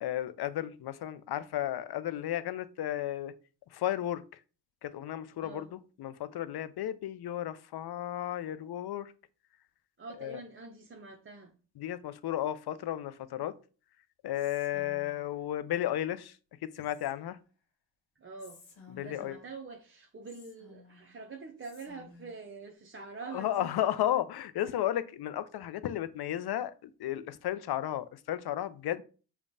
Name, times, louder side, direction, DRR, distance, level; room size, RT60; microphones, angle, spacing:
voice 1, 0.0-3.3 3.7-4.2 4.8-9.1 10.2-10.4 11.8-13.5 14.2-16.4 16.6-17.4 19.0-19.4 23.3-29.0, left 12 dB, 55° left, 0.5 m, -33 dB
voice 2, 10.0-11.5 18.2-18.6 19.0-23.7, right 4 dB, 25° right, 0.6 m, -45 dB
Whispering, 14.3-15.4 16.8-17.5 18.4-19.6 20.3-21.2 21.6-22.5, left 4 dB, 70° left, 1.1 m, -56 dB
5.1 x 2.3 x 2.6 m
supercardioid pair, 45°, 47 cm